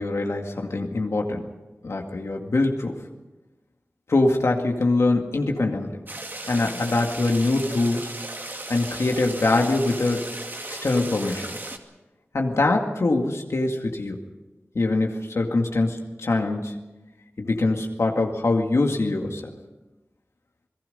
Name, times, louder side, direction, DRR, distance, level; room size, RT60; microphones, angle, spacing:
voice 1, 0.0-1.4 1.8-3.0 4.1-6.0 6.5-8.1 8.7-10.2 10.7-11.5 12.3-14.2 14.7-16.8 17.4-19.4, left 2 dB, 85° left, 2 dB, 2.1 m, -23 dB
sound 1, 6.1-11.8, right 1 dB, 45° right, 2.3 m, -36 dB
28.0 x 18.5 x 5.4 m, 1.1 s
wide cardioid pair, 45°, 5 cm